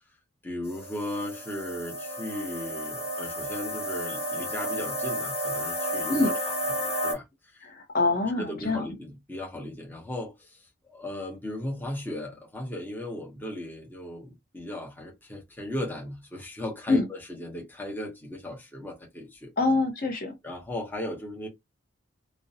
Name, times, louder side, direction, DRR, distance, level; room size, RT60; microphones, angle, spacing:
voice 1, 0.4-6.4 6.7-7.6 8.4-19.5 20.4-21.5, left 1 dB, 10° left, 0.7 m, -37 dB
sound 1, 0.7-7.1, right 1 dB, 30° left, 1.3 m, -32 dB
voice 2, 7.6-8.9 16.9-17.0 19.6-20.3, left 3 dB, 50° left, 0.6 m, -25 dB
2.5 x 2.0 x 2.6 m
head